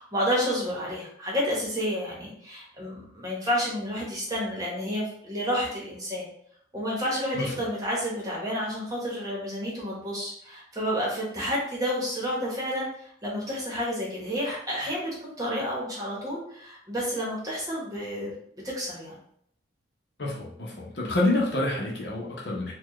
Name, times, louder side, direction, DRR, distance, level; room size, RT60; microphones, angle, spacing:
voice 1, 0.0-6.3 6.7-19.2, equal, 20° right, -4 dB, 1.0 m, -30 dB
voice 2, 20.2-22.7, left 2 dB, 60° left, -3 dB, 0.9 m, -27 dB
4.2 x 2.3 x 3.1 m, 0.66 s
head